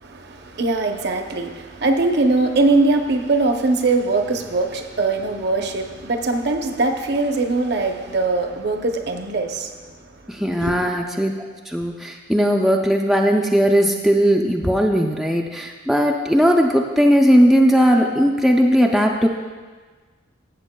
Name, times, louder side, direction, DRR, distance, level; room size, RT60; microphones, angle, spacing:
voice 1, 0.0-9.7 10.6-11.0, right 3 dB, 55° right, 5 dB, 0.7 m, -21 dB
voice 2, 10.3-11.3 11.7-19.3, equal, ahead, 0 dB, 0.4 m, -17 dB
14.5 x 7.8 x 2.2 m, 1.4 s
head